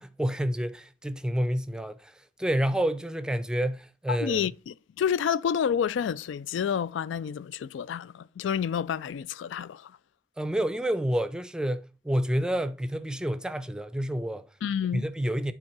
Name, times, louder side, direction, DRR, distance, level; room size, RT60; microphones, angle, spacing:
voice 1, 0.0-2.1 2.4-4.5 10.4-14.5 14.9-15.5, equal, 5° right, 0.5 m, -29 dB
voice 2, 4.1-10.0 14.6-15.0, left 8 dB, 75° left, 0.3 m, -29 dB
8.8 x 3.8 x 4.6 m
head